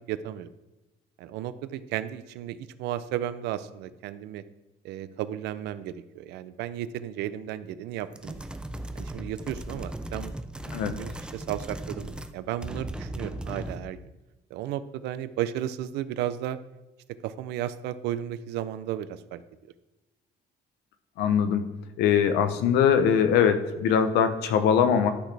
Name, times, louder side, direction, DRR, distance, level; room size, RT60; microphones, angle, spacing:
voice 1, 0.1-0.5 1.2-4.4 4.8-8.4 8.9-10.3 10.8-14.0 14.5-16.6 17.2-19.4, right 11 dB, 85° right, 13 dB, 0.5 m, -34 dB
sound 1, 8.1-12.4 12.6-13.9, right 1 dB, 5° right, 0.4 m, -37 dB
voice 2, 21.2-21.6 22.0-25.1, left 7 dB, 85° left, 10 dB, 0.9 m, -22 dB
11.5 x 6.0 x 3.4 m, 1.1 s
cardioid pair, 110°, 17 cm